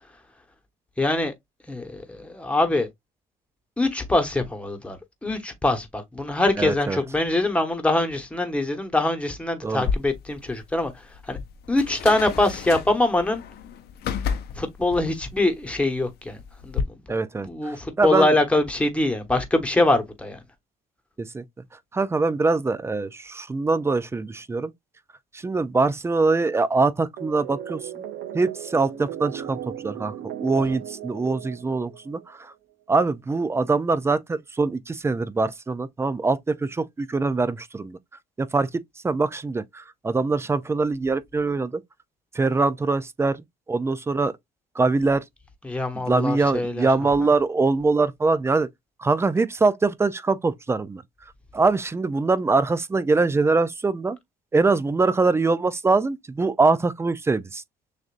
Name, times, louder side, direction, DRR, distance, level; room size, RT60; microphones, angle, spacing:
voice 1, 1.0-1.3 1.7-2.9 3.8-5.0 5.2-11.4 11.7-13.4 14.6-16.8 17.4-20.4 45.6-46.9 47.2-47.3, left 2 dB, 5° left, 1.1 m, -23 dB
voice 2, 6.6-7.0 9.6-9.8 17.1-18.3 21.2-21.4 21.9-24.7 25.3-27.8 28.3-32.5 32.9-38.0 38.4-38.7 39.0-41.8 42.3-43.4 43.7-44.3 44.8-45.2 46.1-48.7 49.0-51.0 51.5-54.2 54.5-57.6, right 3 dB, 15° right, 0.4 m, -23 dB
sound 1, 9.8-16.8, left 6 dB, 70° left, 0.8 m, -32 dB
sound 2, 27.2-32.3, right 11 dB, 70° right, 0.7 m, -36 dB
6.4 x 2.6 x 2.5 m
cardioid pair, 110°, 17 cm